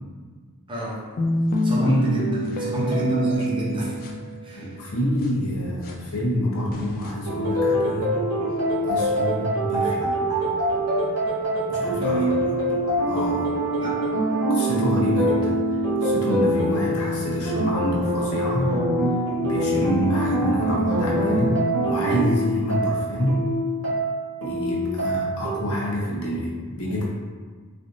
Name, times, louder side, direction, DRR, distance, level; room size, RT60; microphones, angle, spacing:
voice 1, 0.7-1.0 1.6-3.9 4.4-4.7 12.0-12.4 13.8-14.0 19.7-20.0, right 1 dB, 20° right, -6 dB, 0.6 m, -25 dB
sound 1, 1.2-4.8 5.2-5.3 5.8-5.9 6.7-7.1, equal, 40° left, 0.3 m, -27 dB
voice 2, 4.5-8.1 8.9-10.2 11.7-12.5 13.1-13.5 14.5-18.8 19.4-23.5 24.4-27.0, equal, 70° left, -4 dB, 0.7 m, -27 dB
sound 2, 7.2-25.6, right 1 dB, 75° right, 1.1 m, -24 dB
3.2 x 2.5 x 2.6 m, 1.5 s
head